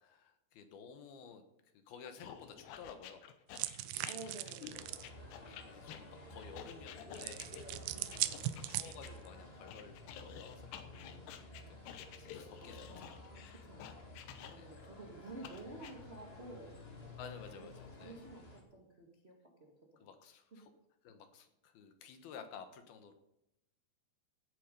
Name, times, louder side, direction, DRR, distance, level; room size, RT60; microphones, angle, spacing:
voice 1, 0.0-1.4 1.7-3.3 3.8-4.1 4.5-4.6 5.1-8.0 8.3-9.9 10.4-11.0 11.7-13.6 14.6-14.8 17.2-18.2 20.0-20.7 21.0-23.1, left 6 dB, 70° left, 8 dB, 3.0 m, -54 dB
sound 1, 2.2-9.1 9.7-14.9 15.4-15.9, left 9 dB, 85° left, 3.2 m, -51 dB
sound 2, 3.5-5.1 7.1-9.3, right 14 dB, 80° right, 2.2 m, -39 dB
voice 2, 4.0-4.9 7.9-8.5 10.9-12.2 12.6-13.8 14.5-16.7 17.6-17.7 18.0-20.1 20.5-20.7, right 2 dB, 50° right, -1 dB, 0.7 m, -52 dB
sound 3, 4.7-18.6, left 2 dB, 35° left, 1.0 m, -53 dB
17.5 x 8.4 x 5.4 m, 0.85 s
omnidirectional pair, 4.7 m